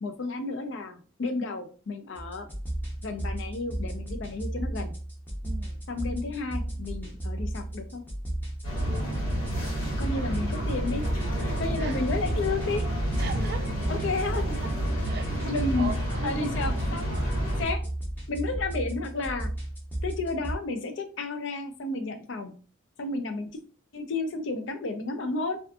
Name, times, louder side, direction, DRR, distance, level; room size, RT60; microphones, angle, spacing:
voice 1, 0.0-2.5 3.0-4.9 5.9-8.0 10.0-11.0 11.6-12.9 13.9-14.5 15.5-15.9 16.2-17.2 17.6-17.8 18.3-19.5 20.0-22.5 23.0-23.5 23.9-25.6, left 3 dB, 65° left, 0.4 m, -32 dB
sound 1, 2.1-20.6, right 1 dB, 10° left, 0.6 m, -34 dB
voice 2, 5.4-5.8 9.9-10.3 11.8-12.1 13.2-13.8 14.6-14.7 15.0-17.0, right 4 dB, 50° right, 0.3 m, -40 dB
sound 2, 8.6-17.6, equal, 90° left, 1.3 m, -30 dB
2.5 x 2.4 x 2.3 m
head